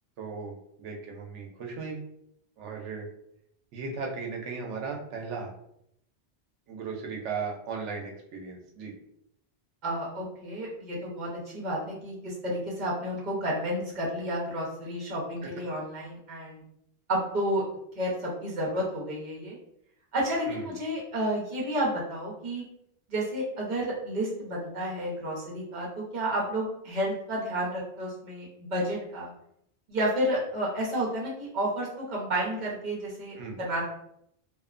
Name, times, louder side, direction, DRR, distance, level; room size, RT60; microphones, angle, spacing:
voice 1, 0.2-2.0 2.6-3.1 3.7-5.5 6.7-8.9 20.5-20.7 33.4-33.6, right 5 dB, 90° right, 1 dB, 0.9 m, -36 dB
voice 2, 9.8-16.6 17.1-17.6 18.0-19.6 20.1-22.6 23.1-29.3 29.9-33.8, right 1 dB, 45° right, -4 dB, 0.9 m, -31 dB
2.7 x 2.1 x 2.4 m, 0.75 s
omnidirectional pair, 1.2 m